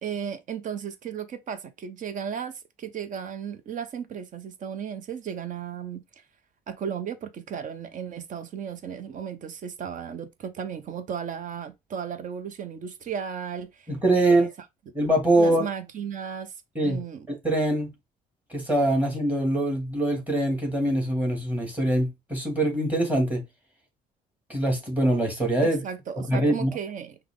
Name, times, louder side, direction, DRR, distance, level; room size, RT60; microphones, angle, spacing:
voice 1, 0.0-6.0 6.7-13.9 14.1-14.5 15.3-16.5 16.8-17.3 25.8-27.2, right 7 dB, 50° right, 0.9 m, -35 dB
voice 2, 13.9-14.5 14.9-15.6 16.8-17.0 17.3-17.9 18.5-23.4 24.5-25.8 26.2-26.8, right 1 dB, 10° right, 2.2 m, -23 dB
5.7 x 2.3 x 3.6 m
cardioid pair, 110°, 17 cm